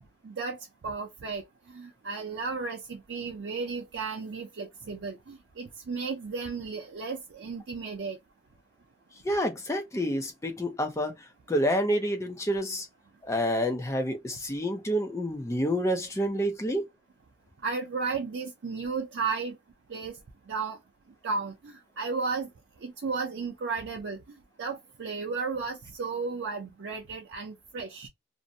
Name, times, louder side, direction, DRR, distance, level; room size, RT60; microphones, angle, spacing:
voice 1, 0.2-8.2 17.6-19.6 19.9-20.2 20.5-20.8 21.2-22.5 22.8-24.2 24.6-28.1, right 4 dB, 90° right, 0.5 m, -34 dB
voice 2, 9.2-12.9 13.2-16.9, equal, 15° left, 0.5 m, -28 dB
2.6 x 2.1 x 2.6 m
head